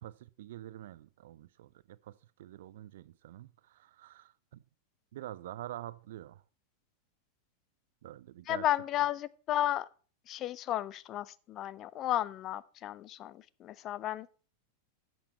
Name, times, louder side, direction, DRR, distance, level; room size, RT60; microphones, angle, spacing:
voice 1, 0.0-4.6 5.1-6.4 8.0-8.7, right 13 dB, 55° right, 0.4 m, -47 dB
voice 2, 8.5-9.9 10.3-14.3, left 12 dB, 35° left, 0.4 m, -33 dB
10.5 x 6.8 x 4.2 m
figure-of-eight pair, 90°, 0 cm